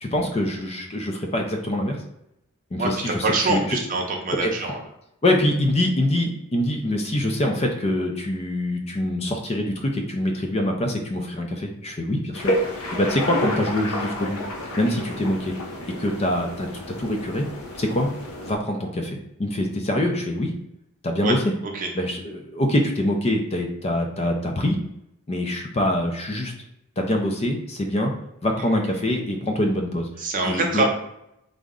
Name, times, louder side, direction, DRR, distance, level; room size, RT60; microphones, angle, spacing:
voice 1, 0.0-2.0 2.7-3.6 4.4-4.5 5.2-14.4 14.8-15.5 16.0-16.7 17.0-17.5 17.8-18.1 18.5-20.5 21.0-21.4 21.9-24.8 25.3-26.5 27.0-28.1 28.4-30.1 30.4-30.8, left 1 dB, 30° left, 2 dB, 0.4 m, -24 dB
voice 2, 2.8-4.8 21.2-21.4 21.7-21.9 28.6-29.1 30.2-30.9, right 2 dB, 40° right, 1 dB, 0.6 m, -25 dB
sound 1, 12.3-18.6, left 1 dB, 80° left, 0.8 m, -30 dB
3.7 x 2.1 x 3.6 m, 0.82 s
head